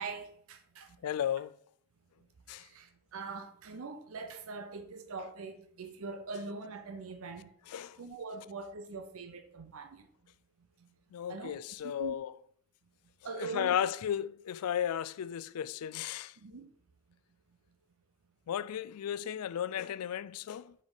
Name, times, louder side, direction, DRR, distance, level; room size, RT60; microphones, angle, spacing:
voice 1, 0.0-1.0 2.6-7.5 8.0-10.1 11.3-11.6 11.8-12.2 13.2-13.8 16.4-16.7, right 4 dB, 70° right, 0.6 m, -42 dB
voice 2, 1.0-1.6 2.5-2.7 7.7-8.0 11.1-12.3 13.4-16.3 18.5-20.7, left 9 dB, 85° left, 0.3 m, -34 dB
5.5 x 4.9 x 3.9 m
head